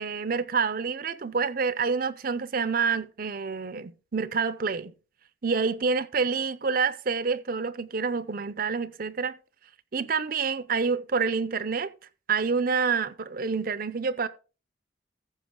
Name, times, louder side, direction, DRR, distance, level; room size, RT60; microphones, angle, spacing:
voice 1, 0.0-4.9 5.4-9.4 9.9-11.9 12.3-14.3, right 5 dB, 45° right, 0.5 m, -27 dB
14.5 x 5.5 x 3.7 m
head